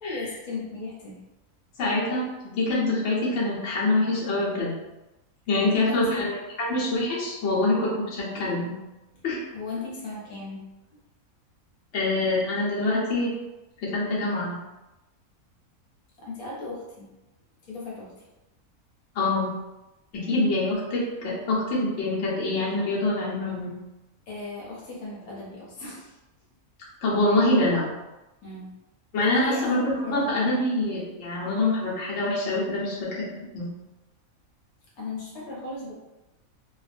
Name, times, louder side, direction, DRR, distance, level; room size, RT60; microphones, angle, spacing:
voice 1, 0.0-1.2 5.6-6.3 8.3-8.5 9.1-9.2 9.5-10.7 16.2-17.1 17.6-18.1 20.1-20.5 24.3-26.2 28.4-28.7 29.4-30.5 35.0-35.9, left 3 dB, 80° left, -5 dB, 1.2 m, -37 dB
voice 2, 1.8-4.7 5.5-8.7 9.2-9.4 11.9-13.3 13.8-14.6 19.1-19.5 20.1-23.7 27.0-27.9 29.1-33.3 33.5-33.7, left 2 dB, 60° left, -6 dB, 1.1 m, -25 dB
2.5 x 2.3 x 2.5 m, 1.0 s
omnidirectional pair, 1.5 m